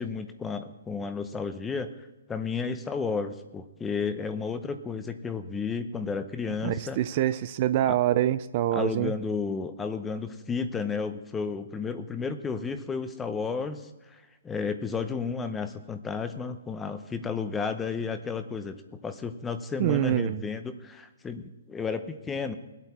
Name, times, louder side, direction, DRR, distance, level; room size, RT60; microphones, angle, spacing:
voice 1, 0.0-1.9 2.3-7.0 7.9-8.0 8.7-14.2 14.4-22.5, left 5 dB, 10° left, 9 dB, 0.7 m, -32 dB
voice 2, 6.6-9.1 19.8-20.4, right 13 dB, 40° right, 13 dB, 0.4 m, -25 dB
19.5 x 8.2 x 4.3 m, 1.1 s
hypercardioid pair, 155°, 0 cm